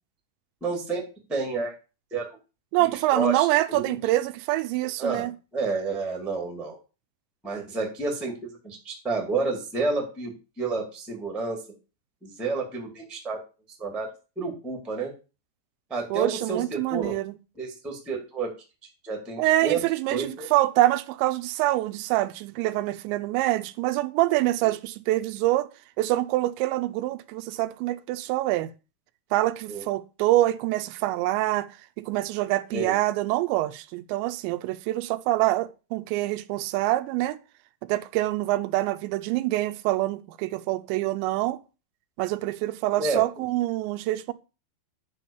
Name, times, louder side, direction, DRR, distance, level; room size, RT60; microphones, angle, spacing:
voice 1, 0.6-1.0 1.3-1.7 2.1-2.3 2.8-3.9 5.0-5.3 5.5-6.8 7.4-8.3 8.6-10.3 10.6-11.6 12.2-13.4 13.8-14.1 14.3-15.1 15.9-17.1 17.6-18.5 19.0-19.8 20.1-20.5 29.7-29.8 32.7-32.9 43.0-43.2, right 3 dB, ahead, 0.9 m, -30 dB
voice 2, 2.7-5.3 16.1-17.4 19.4-25.7 26.0-28.7 29.3-31.7 32.0-37.4 37.9-41.6 42.2-44.3, right 16 dB, 85° right, 2.8 m, -25 dB
10.0 x 3.7 x 7.1 m
omnidirectional pair, 5.2 m